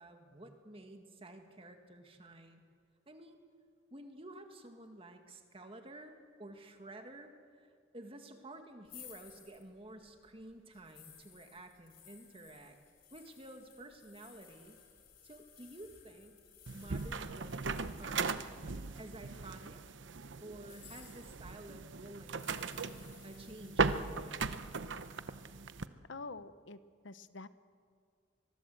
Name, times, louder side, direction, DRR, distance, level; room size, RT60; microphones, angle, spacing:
voice 1, 0.0-2.6 3.1-3.4 3.9-12.8 13.1-14.8 15.2-16.4 16.7-18.5 19.0-19.8 20.4-24.5, right 1 dB, 30° right, 5 dB, 2.0 m, -52 dB
sound 1, 8.8-19.8 20.6-25.4, left 8 dB, 45° left, 3.6 m, -59 dB
sound 2, 16.7-25.9, right 4 dB, 70° right, 0.8 m, -38 dB
voice 2, 26.1-27.5, left 3 dB, 70° left, 13 dB, 0.9 m, -47 dB
24.0 x 22.0 x 7.9 m, 2.1 s
head